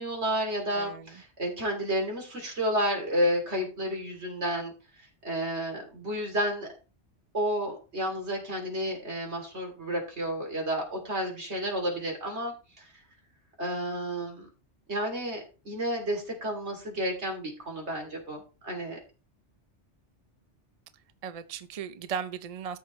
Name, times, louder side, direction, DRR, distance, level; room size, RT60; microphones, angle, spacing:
voice 1, 0.0-4.7 5.2-6.7 7.3-12.9 13.6-14.5 14.9-19.0, equal, 70° right, 3.3 m, -31 dB
voice 2, 0.8-1.1 21.2-22.8, right 7 dB, 45° right, 0.5 m, -36 dB
13.5 x 6.6 x 3.1 m
omnidirectional pair, 1.2 m